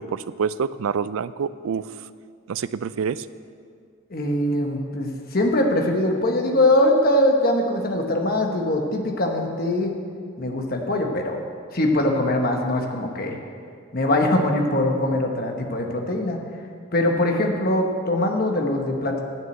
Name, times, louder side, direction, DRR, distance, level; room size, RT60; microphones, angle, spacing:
voice 1, 0.0-1.9 2.5-3.3, right 6 dB, 75° right, 16 dB, 0.4 m, -27 dB
voice 2, 4.1-9.9 10.4-11.4 11.7-13.4 13.9-16.4 16.9-19.2, left 1 dB, 45° left, 2 dB, 1.1 m, -22 dB
10.5 x 6.4 x 7.8 m, 2.2 s
head